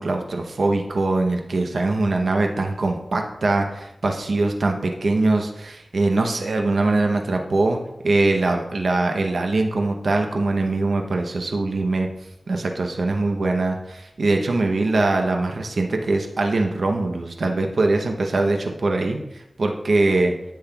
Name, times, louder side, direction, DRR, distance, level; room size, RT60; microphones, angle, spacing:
voice 1, 0.0-12.1 12.5-20.4, right 2 dB, 80° right, 3 dB, 0.7 m, -22 dB
10.5 x 7.5 x 2.3 m, 0.87 s
wide cardioid pair, 95°, 0 cm